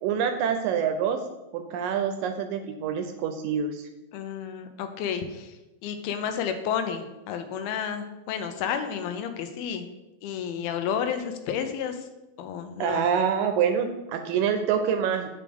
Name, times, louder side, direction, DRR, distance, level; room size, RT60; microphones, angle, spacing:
voice 1, 0.0-1.2 1.5-3.9 12.8-15.3, right 7 dB, 80° right, 6 dB, 2.0 m, -26 dB
voice 2, 4.1-5.5 5.8-9.9 10.2-12.0 12.4-13.0, left 8 dB, 85° left, 7 dB, 2.7 m, -31 dB
8.5 x 6.5 x 3.5 m, 0.99 s
omnidirectional pair, 4.3 m